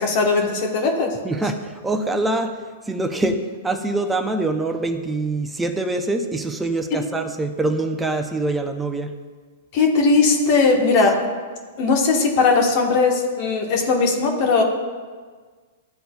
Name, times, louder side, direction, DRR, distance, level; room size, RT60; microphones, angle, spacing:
voice 1, 0.0-1.2 6.9-7.0 9.7-11.2 11.8-14.6, left 4 dB, 50° left, 1 dB, 1.2 m, -18 dB
voice 2, 1.2-2.5 2.9-9.1, right 2 dB, 10° right, 5 dB, 0.6 m, -24 dB
11.5 x 3.9 x 2.3 m, 1.5 s
hypercardioid pair, 120°, 0 cm